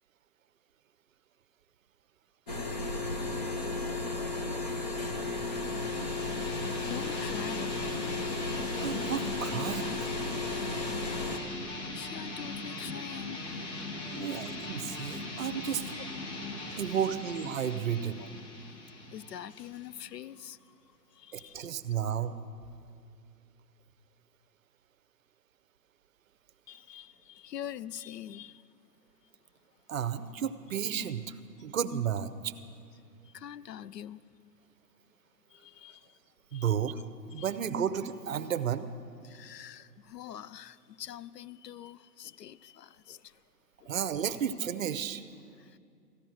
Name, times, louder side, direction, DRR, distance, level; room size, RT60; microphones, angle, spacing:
sound 1, 2.5-11.4, left 3 dB, 25° left, 0.5 m, -34 dB
sound 2, 5.1-20.5, left 2 dB, 45° left, 1.4 m, -40 dB
voice 1, 6.9-7.8 8.9-9.1 10.5-11.2 11.9-14.3 16.0-16.8 18.2-18.3 19.1-20.6 21.1-21.7 26.7-28.6 33.3-34.2 35.5-36.2 36.5-36.8 37.4-37.5 39.2-43.3, left 11 dB, 75° left, 17 dB, 0.5 m, -45 dB
voice 2, 8.8-10.0 14.1-15.8 16.8-18.2 21.3-22.4 29.9-31.3 31.6-32.5 36.5-37.0 37.3-38.9 43.9-45.2, right 8 dB, 55° right, 13 dB, 0.7 m, -32 dB
14.5 x 10.0 x 6.2 m, 2.3 s
hypercardioid pair, 140°, 49 cm